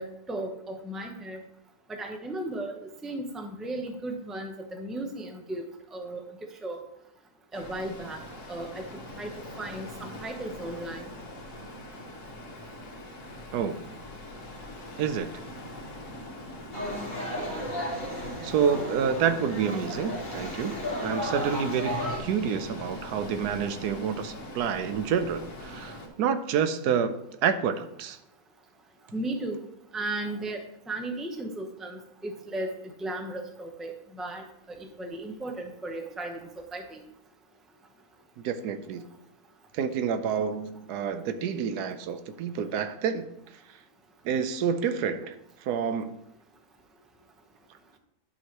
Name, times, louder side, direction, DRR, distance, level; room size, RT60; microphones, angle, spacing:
voice 1, 0.0-1.4 1.9-5.6 5.9-6.2 6.6-6.8 7.5-8.9 9.2-9.3 9.6-11.0 29.1-29.7 29.9-32.7 33.0-37.0, right 1 dB, ahead, 3 dB, 0.6 m, -35 dB
sound 1, 7.5-26.1, left 1 dB, 55° left, 1.7 m, -42 dB
voice 2, 15.0-15.3 18.4-28.2 38.4-39.1 39.7-43.2 44.2-46.2, right 7 dB, 90° right, 9 dB, 1.2 m, -28 dB
sound 2, 16.7-22.2, equal, 30° left, 2.4 m, -34 dB
11.0 x 5.6 x 3.0 m, 0.82 s
omnidirectional pair, 1.6 m